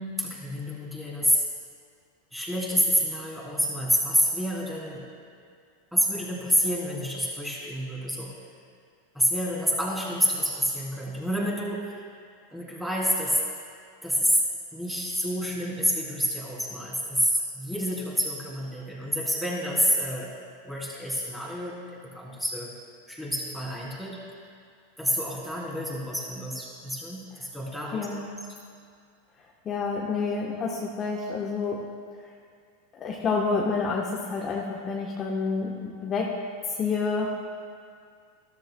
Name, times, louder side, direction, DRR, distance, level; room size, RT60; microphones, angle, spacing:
voice 1, 0.0-1.4 2.3-5.1 5.9-8.3 9.1-12.0 12.5-13.4 14.0-14.4 14.7-20.3 20.6-21.8 22.0-22.7 23.1-24.2 25.0-28.1, equal, 5° right, -4 dB, 3.0 m, -28 dB
voice 2, 27.9-28.4 29.6-31.8 32.9-36.3 36.8-37.3, left 4 dB, 30° left, -2 dB, 1.1 m, -28 dB
13.5 x 13.0 x 2.3 m, 2.2 s
hypercardioid pair, 90°, 0 cm